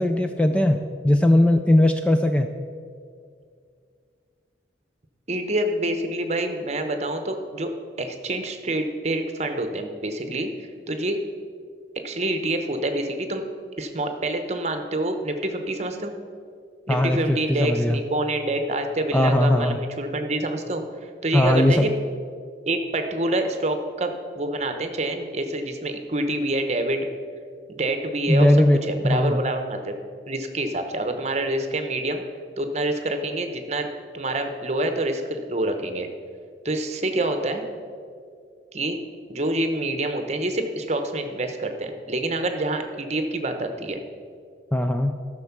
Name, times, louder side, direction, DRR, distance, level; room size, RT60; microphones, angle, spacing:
voice 1, 0.0-2.5 16.9-18.0 19.1-19.8 21.3-21.9 28.3-28.8 29.0-29.4 44.7-45.2, left 1 dB, 5° left, 6 dB, 0.3 m, -19 dB
voice 2, 5.3-7.7 8.0-10.5 10.9-11.2 12.0-13.4 13.8-16.1 16.9-20.8 21.2-21.9 22.7-27.1 27.7-28.5 28.8-30.0 30.3-32.2 32.6-33.9 34.1-36.1 36.6-37.6 38.7-39.0 39.3-44.0, right 1 dB, 40° right, 6 dB, 0.9 m, -27 dB
13.5 x 6.4 x 5.9 m, 2.2 s
head